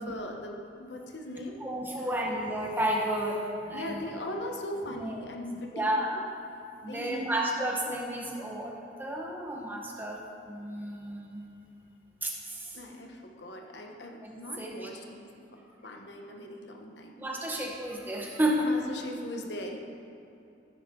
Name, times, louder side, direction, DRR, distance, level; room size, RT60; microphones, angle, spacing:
voice 1, 0.0-1.6 2.0-2.1 3.7-5.9 6.8-7.3 12.7-15.3 15.8-17.1 18.6-19.8, left 1 dB, 70° left, 2 dB, 1.2 m, -39 dB
voice 2, 1.6-4.0 4.9-5.3 5.7-6.2 6.8-8.7 9.0-10.2 10.5-11.4 12.2-12.8 14.2-14.9 17.2-18.7, right 1 dB, 10° right, -2 dB, 1.3 m, -32 dB
14.5 x 9.2 x 3.9 m, 2.7 s
head